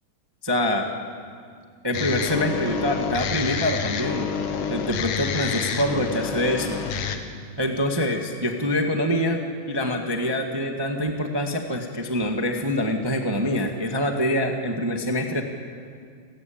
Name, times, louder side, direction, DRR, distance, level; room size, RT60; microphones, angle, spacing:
voice 1, 0.4-0.9 1.8-4.3 4.7-6.8 7.6-9.4 9.7-15.4, left 1 dB, 25° right, 3 dB, 0.5 m, -25 dB
sound 1, 1.9-7.2, left 7 dB, 80° left, 3.0 m, -28 dB
28.5 x 15.5 x 8.7 m, 2.1 s
omnidirectional pair, 3.7 m